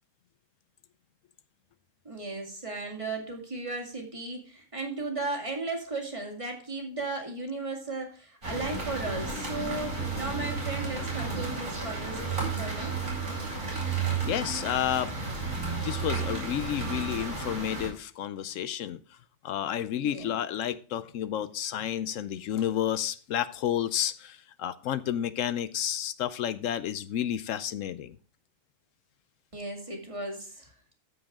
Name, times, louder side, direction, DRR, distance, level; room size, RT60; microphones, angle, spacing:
voice 1, 2.0-12.9 20.0-20.3 29.5-30.7, right 3 dB, 25° right, 2.3 m, -36 dB
sound 1, 8.4-17.9, right 4 dB, 80° right, 5.3 m, -32 dB
voice 2, 14.2-15.1 15.8-19.0 19.4-28.2, left 10 dB, 75° left, 0.9 m, -31 dB
14.0 x 5.1 x 3.6 m
omnidirectional pair, 1.4 m